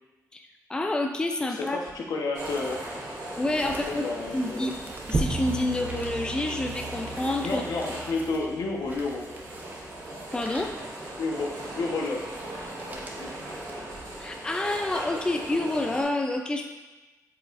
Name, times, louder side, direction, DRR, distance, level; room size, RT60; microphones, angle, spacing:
voice 1, 0.3-1.8 3.4-4.0 4.3-4.8 5.1-7.6 10.3-10.7 14.2-16.7, left 2 dB, 15° left, 3 dB, 0.4 m, -28 dB
voice 2, 1.5-2.8 3.6-4.7 7.4-9.3 11.2-12.3 12.9-13.3, left 3 dB, 80° left, -1 dB, 1.0 m, -31 dB
sound 1, 1.7-14.3 14.8-14.9, right 2 dB, 25° right, 0.7 m, -39 dB
sound 2, 2.3-16.0, right 1 dB, 80° right, 2.0 m, -39 dB
sound 3, 5.3-10.3, right 3 dB, 50° right, 1.0 m, -41 dB
7.8 x 4.8 x 2.5 m, 1.1 s
wide cardioid pair, 155°, 7 cm